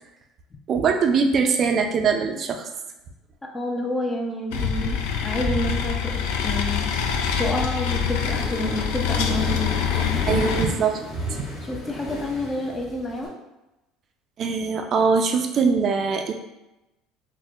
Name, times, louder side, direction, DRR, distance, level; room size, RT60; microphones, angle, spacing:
voice 1, 0.7-2.7 10.2-11.5 14.4-16.3, right 5 dB, 45° right, 4 dB, 0.4 m, -22 dB
voice 2, 3.4-6.9 7.4-10.4 11.6-13.3, left 1 dB, 20° left, 1 dB, 0.5 m, -29 dB
sound 1, 4.5-10.6, left 7 dB, 80° left, 0.3 m, -25 dB
Accelerating revving vroom, 8.0-13.3, left 1 dB, 45° left, 1.2 m, -35 dB
4.2 x 2.2 x 2.4 m, 0.98 s
supercardioid pair, 95°, 0 cm